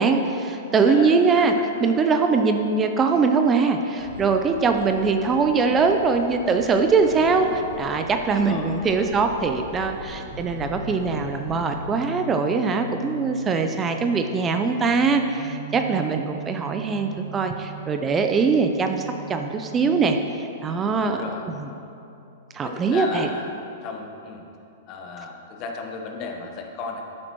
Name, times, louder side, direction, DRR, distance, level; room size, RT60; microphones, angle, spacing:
voice 1, 0.0-1.5 1.8-21.2 21.6-21.7 22.5-23.3, right 4 dB, 20° right, 5 dB, 0.5 m, -22 dB
voice 2, 0.7-1.6 7.1-7.6 8.3-8.7 21.0-21.4 22.6-23.5 23.8-24.4 24.9-27.0, left 4 dB, 40° left, 2 dB, 1.2 m, -35 dB
sound 1, 4.0-11.8, left 2 dB, 85° left, 1.5 m, -41 dB
sound 2, 10.3-23.9, right 3 dB, 65° right, 1.4 m, -40 dB
11.0 x 8.6 x 3.1 m, 2.7 s
hypercardioid pair, 110°, 0 cm